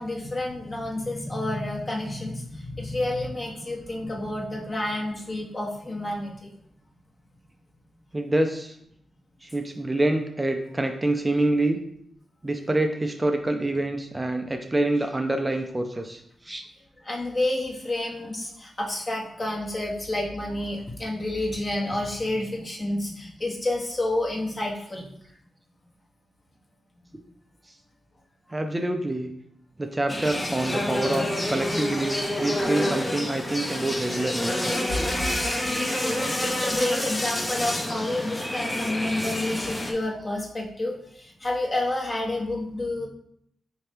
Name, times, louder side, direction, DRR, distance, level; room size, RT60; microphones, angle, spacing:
voice 1, 0.0-6.5 17.0-25.1 32.6-32.7 35.2-35.3 35.7-43.1, left 1 dB, 35° left, -2 dB, 1.1 m, -29 dB
voice 2, 8.1-8.7 9.4-11.8 12.4-16.6 28.5-29.3 29.8-34.5, right 1 dB, 20° right, 5 dB, 0.4 m, -26 dB
sound 1, 30.1-39.9, left 1 dB, 20° left, 0.6 m, -28 dB
4.3 x 2.8 x 3.2 m, 0.71 s
cardioid pair, 55°, 0 cm